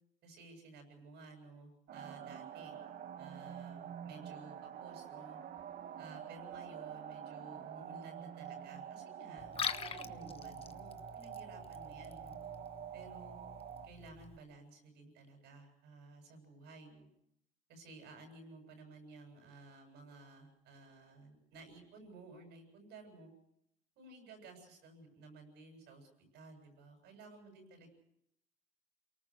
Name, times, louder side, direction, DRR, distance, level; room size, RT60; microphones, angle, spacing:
voice 1, 0.2-2.7 3.2-5.4 6.0-12.4 12.9-13.3 13.8-17.1 17.7-23.3 24.0-27.9, right 3 dB, 85° right, 5 dB, 7.9 m, -55 dB
sound 1, 1.9-13.9, right 9 dB, 65° right, 1.5 m, -47 dB
Liquid, 9.4-14.4, left 6 dB, 35° left, 1.1 m, -45 dB
28.5 x 19.0 x 6.5 m, 0.75 s
cardioid pair, 110°, 17 cm